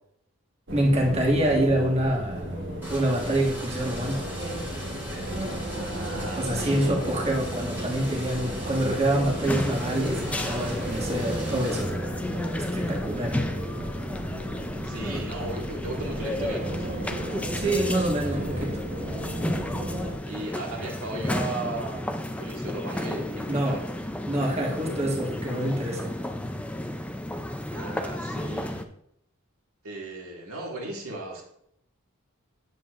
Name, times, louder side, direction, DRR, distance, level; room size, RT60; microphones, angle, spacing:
voice 1, 0.7-2.5 2.9-4.3 6.4-11.9 12.7-13.4 17.5-18.8 23.5-23.8 24.3-26.1, right 1 dB, 30° right, -1 dB, 1.5 m, -26 dB
sound 1, 0.7-20.2, right 1 dB, 55° right, 1.3 m, -34 dB
sound 2, 2.8-11.8, equal, 10° right, 2.1 m, -39 dB
voice 2, 5.7-6.9 14.8-17.0 20.3-24.0 27.7-28.9 29.8-31.4, right 2 dB, 75° right, -1 dB, 2.0 m, -36 dB
sound 3, 9.4-28.8, left 1 dB, 5° left, 0.4 m, -33 dB
9.6 x 7.6 x 2.5 m, 0.74 s
head